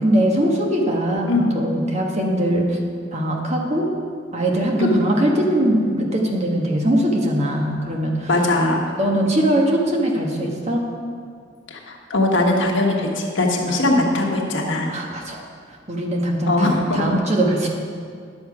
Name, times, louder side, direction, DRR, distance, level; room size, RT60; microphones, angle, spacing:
voice 1, 0.0-1.3 1.5-2.8 3.1-3.9 4.3-8.3 9.0-10.8 13.7-13.8 14.9-15.4 15.9-17.7, right 1 dB, 35° right, 0 dB, 1.2 m, -21 dB
voice 2, 1.3-1.6 4.8-5.0 8.3-8.8 11.7-14.9 16.5-17.0, left 2 dB, 80° left, 0 dB, 1.3 m, -20 dB
10.5 x 6.8 x 4.9 m, 2.1 s
head